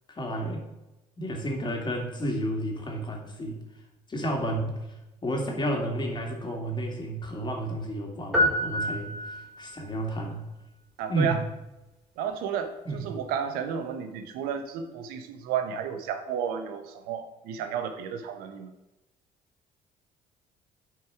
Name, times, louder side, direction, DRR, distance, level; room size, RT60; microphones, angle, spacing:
voice 1, 0.1-0.6 1.2-3.6 4.1-4.7 5.2-10.4 11.1-11.4 12.8-13.2 14.5-14.7, right 1 dB, 30° left, 1 dB, 2.3 m, -31 dB
sound 1, 8.3-9.8, left 1 dB, ahead, 2.5 m, -27 dB
voice 2, 11.0-11.4 12.2-18.7, right 7 dB, 85° right, 7 dB, 0.9 m, -32 dB
9.3 x 4.7 x 4.9 m, 1.0 s
supercardioid pair, 85°, 15 cm